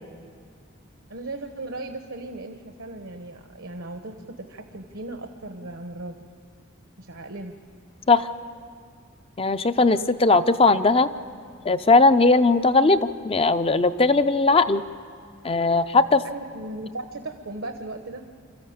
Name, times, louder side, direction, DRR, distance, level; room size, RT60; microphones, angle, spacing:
voice 1, 1.1-6.2 7.0-7.5 16.2-18.3, right 2 dB, 70° right, 6 dB, 1.0 m, -37 dB
voice 2, 9.4-11.1 11.6-14.8 15.4-16.2, left 3 dB, 25° left, 11 dB, 0.5 m, -18 dB
26.5 x 14.0 x 8.7 m, 2.1 s
head